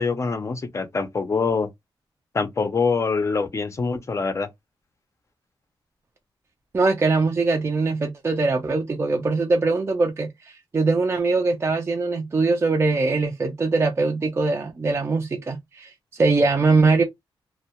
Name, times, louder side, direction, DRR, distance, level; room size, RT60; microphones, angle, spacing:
voice 1, 0.0-1.7 2.3-4.5, left 4 dB, 35° left, 0.5 m, -24 dB
voice 2, 6.7-17.0, right 3 dB, 30° right, 0.3 m, -22 dB
2.2 x 2.0 x 2.7 m
wide cardioid pair, 145°, 9 cm